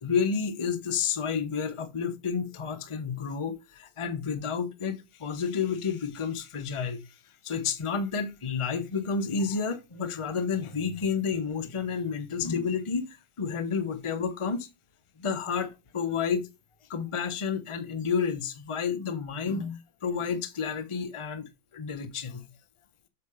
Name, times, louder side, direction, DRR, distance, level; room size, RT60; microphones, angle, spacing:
voice 1, 0.0-7.0 7.4-14.7 15.2-16.5 16.9-22.5, left 6 dB, 30° left, 0.6 m, -30 dB
7.4 x 4.9 x 4.8 m
omnidirectional pair, 2.0 m